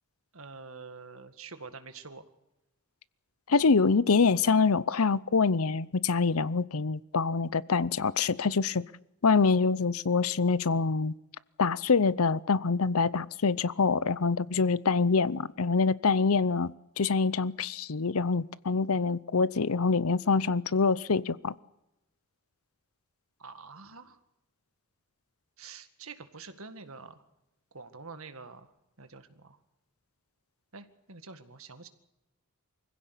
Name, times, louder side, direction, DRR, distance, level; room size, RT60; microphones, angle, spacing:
voice 1, 0.3-2.2 23.4-24.2 25.6-27.2 27.7-28.7 29.0-29.6 30.7-31.9, right 4 dB, 65° right, 2.0 m, -46 dB
voice 2, 3.5-8.8 9.2-11.1 11.6-21.6, left 4 dB, 70° left, 0.7 m, -25 dB
24.5 x 16.0 x 8.3 m
head